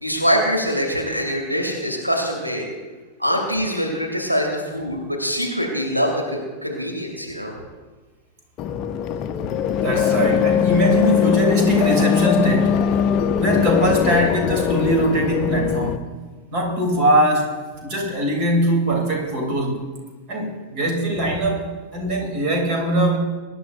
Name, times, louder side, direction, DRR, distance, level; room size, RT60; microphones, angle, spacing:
voice 1, 0.0-2.6 3.2-7.5, equal, 90° right, 0 dB, 2.8 m, -23 dB
sound 1, 8.6-16.0, left 8 dB, 35° left, 0.6 m, -20 dB
voice 2, 9.7-12.8 13.4-16.0 16.5-17.5 17.8-19.9 20.3-23.2, right 1 dB, 40° right, 1 dB, 3.4 m, -21 dB
23.5 x 11.0 x 2.6 m, 1.3 s
figure-of-eight pair, 90°, 0 cm